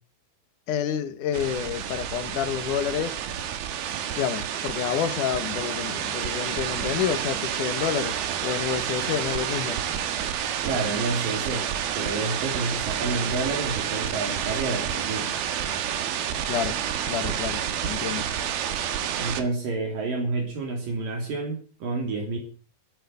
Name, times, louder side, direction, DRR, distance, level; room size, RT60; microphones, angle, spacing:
voice 1, 0.7-3.2 4.2-9.8 16.5-16.8 17.1-18.3, left 9 dB, 65° left, 2.6 m, -29 dB
sound 1, 1.3-19.4, right 9 dB, 85° right, 3.4 m, -29 dB
voice 2, 10.6-11.7 11.9-15.3 19.2-22.4, right 3 dB, 65° right, 4.7 m, -29 dB
15.0 x 9.9 x 8.9 m
omnidirectional pair, 4.2 m